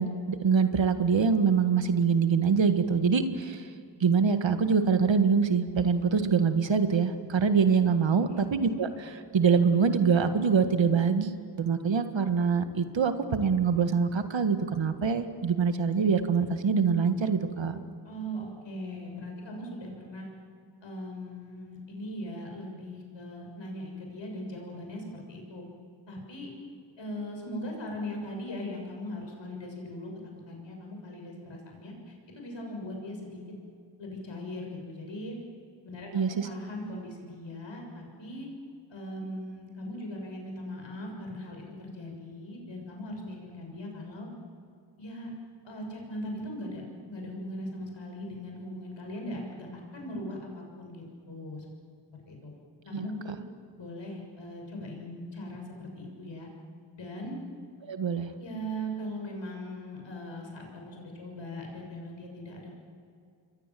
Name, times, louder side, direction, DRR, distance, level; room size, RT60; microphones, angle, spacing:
voice 1, 0.0-3.6 4.0-17.8 36.1-36.5 52.9-53.1 57.9-58.3, right 5 dB, 75° right, 8 dB, 1.7 m, -25 dB
voice 2, 18.0-20.3 20.8-25.6 26.1-26.5 27.0-30.1 30.5-33.4 34.0-35.4 35.8-38.5 38.9-44.3 45.0-45.3 45.6-51.7 52.2-52.5 52.8-53.4 53.8-56.5 57.0-57.4 58.4-62.7, equal, 75° left, 1 dB, 6.8 m, -39 dB
28.0 x 22.0 x 7.7 m, 2.3 s
cardioid pair, 50°, 45 cm